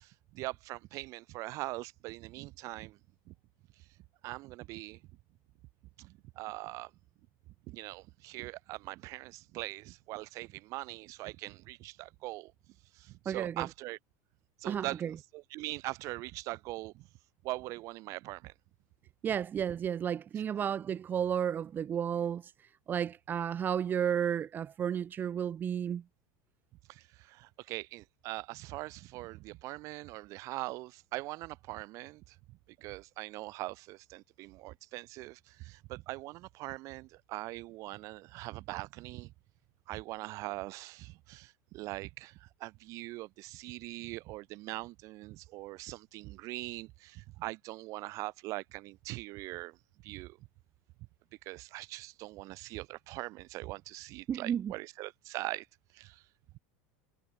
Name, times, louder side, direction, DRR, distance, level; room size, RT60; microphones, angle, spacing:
voice 1, 0.0-3.0 3.3-3.4 4.2-5.0 6.0-6.9 7.7-12.5 12.9-14.0 14.6-15.0 15.3-17.1 17.4-18.5 26.9-39.3 39.9-49.8 50.0-50.4 51.5-55.7 55.9-56.2, right 20 dB, 50° right, 7.0 m, -42 dB
voice 2, 13.3-13.7 14.6-15.1 19.2-22.5 22.9-26.0 54.3-54.7, right 8 dB, 30° right, 2.2 m, -32 dB
supercardioid pair, 130°, 7 cm